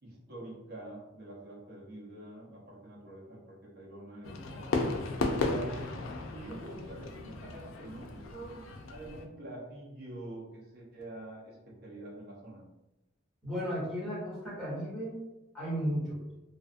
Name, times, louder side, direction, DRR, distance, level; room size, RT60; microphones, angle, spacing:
voice 1, 0.0-5.0 5.4-12.6, right 1 dB, 50° right, -4 dB, 0.8 m, -46 dB
Fireworks, 4.2-9.2, left 3 dB, 75° left, 0.4 m, -35 dB
voice 2, 13.4-15.2 15.5-16.2, equal, ahead, -10 dB, 1.3 m, -34 dB
2.4 x 2.4 x 2.4 m, 1.0 s
head